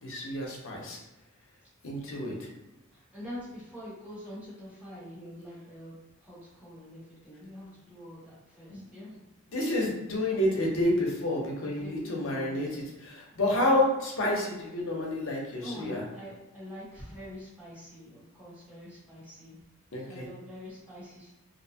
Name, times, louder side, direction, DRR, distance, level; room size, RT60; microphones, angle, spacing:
voice 1, 0.0-1.0 1.8-2.5 8.7-8.8 9.5-16.0 19.9-20.3, left 1 dB, 65° left, -2 dB, 0.7 m, -29 dB
voice 2, 2.9-9.2 11.6-12.6 15.6-19.6 20.1-21.3, left 1 dB, 5° right, -9 dB, 1.0 m, -45 dB
2.7 x 2.2 x 2.7 m, 1.0 s
head